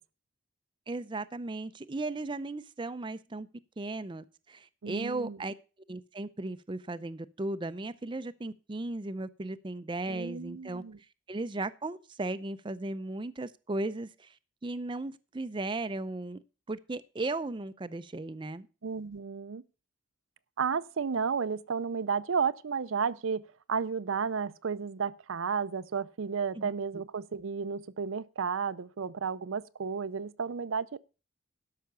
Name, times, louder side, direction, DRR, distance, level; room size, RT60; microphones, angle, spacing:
voice 1, 0.9-3.5 3.8-5.5 5.9-10.8 11.3-14.3 14.6-16.4 16.7-18.7 26.6-26.7, right 2 dB, 25° right, 0.5 m, -36 dB
voice 2, 4.8-5.4 10.1-11.0 18.8-19.6 20.6-31.0, right 6 dB, 80° right, 0.5 m, -32 dB
12.5 x 5.7 x 6.7 m
head